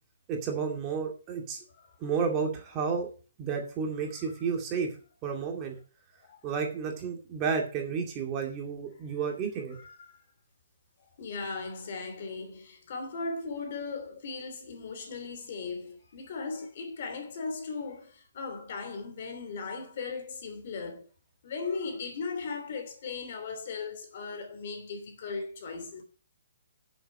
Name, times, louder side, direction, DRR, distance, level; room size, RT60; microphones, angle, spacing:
voice 1, 0.3-1.6 2.0-3.1 3.4-4.9 5.2-5.8 6.4-9.8, right 6 dB, 20° right, 2.3 m, -31 dB
voice 2, 11.2-21.1 21.4-26.0, left 4 dB, 45° left, 2.8 m, -37 dB
8.8 x 7.2 x 6.5 m
hypercardioid pair, 165°, 0 cm